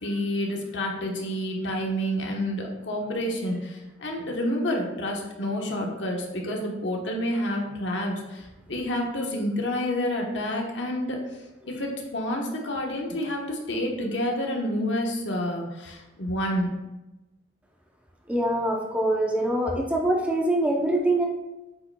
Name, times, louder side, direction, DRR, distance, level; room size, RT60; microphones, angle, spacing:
voice 1, 0.0-11.2 11.7-16.7, left 1 dB, 70° left, 0 dB, 1.1 m, -29 dB
voice 2, 18.3-21.2, right 1 dB, 5° right, 0 dB, 0.7 m, -24 dB
8.2 x 5.0 x 2.3 m, 1.0 s
head